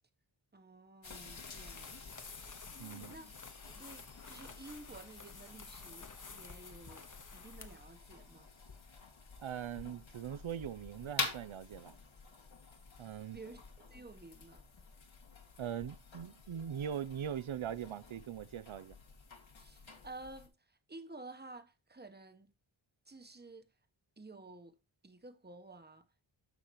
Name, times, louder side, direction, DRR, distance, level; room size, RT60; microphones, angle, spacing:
voice 1, 0.5-2.1 3.1-3.3 3.6-7.0 7.3-8.5 13.3-14.6 19.6-22.5 23.1-23.7 24.2-24.8 25.0-26.2, right 2 dB, 20° right, 1.1 m, -52 dB
sound 1, 1.0-20.5, left 4 dB, 75° left, 2.3 m, -48 dB
sound 2, 1.3-7.9, left 4 dB, 40° left, 1.2 m, -52 dB
voice 2, 2.8-3.1 9.4-11.9 13.0-13.4 15.6-19.0, right 9 dB, 85° right, 0.8 m, -41 dB
13.5 x 5.7 x 3.1 m
wide cardioid pair, 115°, 47 cm